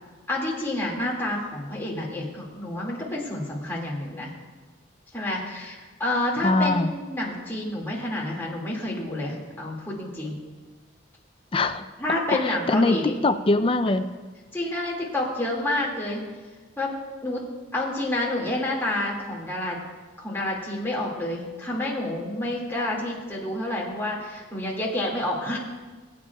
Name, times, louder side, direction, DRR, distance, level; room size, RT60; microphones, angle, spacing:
voice 1, 0.3-4.3 5.1-10.4 12.0-13.2 14.5-16.2 16.8-17.0 17.2-17.4 17.7-19.8 20.2-25.6, left 1 dB, 10° left, -4 dB, 2.1 m, -29 dB
voice 2, 6.4-6.9 11.5-11.8 12.3-14.1, left 2 dB, 25° left, 10 dB, 0.4 m, -22 dB
21.5 x 8.9 x 2.3 m, 1.3 s
head